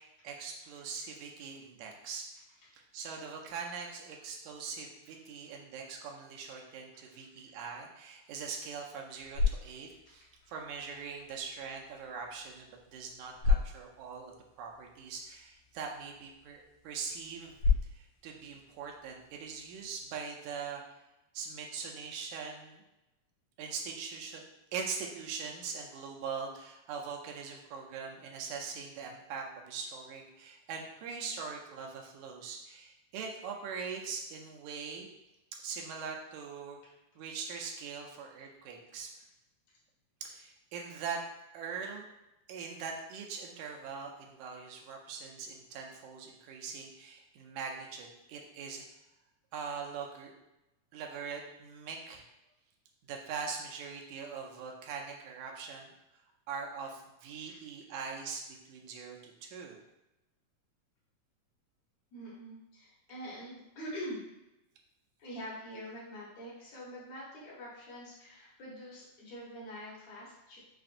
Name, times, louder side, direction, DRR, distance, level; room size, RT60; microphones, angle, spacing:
voice 1, 0.2-2.3 2.9-17.6 17.9-20.8 21.3-22.8 23.6-24.4 24.7-35.1 35.6-36.8 37.2-39.1 40.2-41.2 41.5-42.1 42.5-48.8 49.5-50.3 50.9-52.3 53.1-55.9 56.5-59.8, right 5 dB, 85° right, 1 dB, 2.1 m, -42 dB
sound 1, 9.0-20.1, left 5 dB, 90° left, 2.1 m, -36 dB
voice 2, 62.1-64.2 65.2-70.6, equal, 70° left, -7 dB, 2.5 m, -45 dB
5.8 x 2.5 x 2.5 m, 0.94 s
omnidirectional pair, 3.4 m